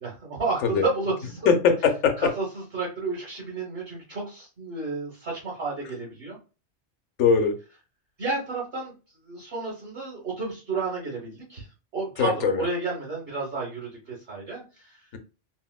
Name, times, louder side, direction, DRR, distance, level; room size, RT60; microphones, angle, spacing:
voice 1, 0.0-1.5 2.4-2.5 2.7-6.4 8.2-8.9 9.3-11.7 11.9-15.0, right 3 dB, 55° right, -5 dB, 1.3 m, -31 dB
voice 2, 1.5-2.3 7.2-7.6 12.2-12.7, left 6 dB, 85° left, 6 dB, 0.9 m, -21 dB
4.2 x 2.0 x 2.2 m, 0.32 s
omnidirectional pair, 1.2 m